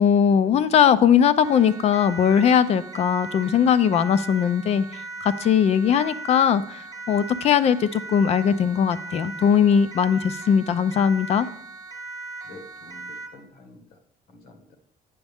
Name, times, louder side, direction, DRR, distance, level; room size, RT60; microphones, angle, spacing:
voice 1, 0.0-11.5, left 8 dB, 40° left, 15 dB, 0.4 m, -20 dB
Siren, 1.4-13.4, right 3 dB, 20° right, 0.9 m, -38 dB
voice 2, 12.4-14.0 14.3-14.8, left 2 dB, 70° left, 6 dB, 1.5 m, -48 dB
9.3 x 7.2 x 3.5 m, 0.67 s
cardioid pair, 170°, 17 cm